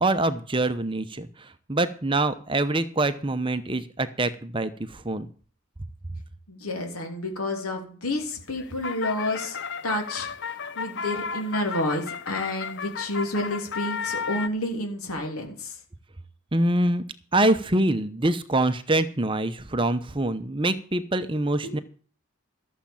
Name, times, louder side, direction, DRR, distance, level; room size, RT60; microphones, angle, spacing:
voice 1, 0.0-5.3 16.5-17.0 17.3-21.8, right 2 dB, 20° right, 11 dB, 0.8 m, -25 dB
voice 2, 6.5-9.6 9.8-15.8 21.6-21.7, left 1 dB, 80° left, 2 dB, 3.1 m, -30 dB
sound 1, 8.3-14.5, left 6 dB, 50° left, 0.7 m, -34 dB
14.5 x 7.4 x 7.1 m, 0.42 s
head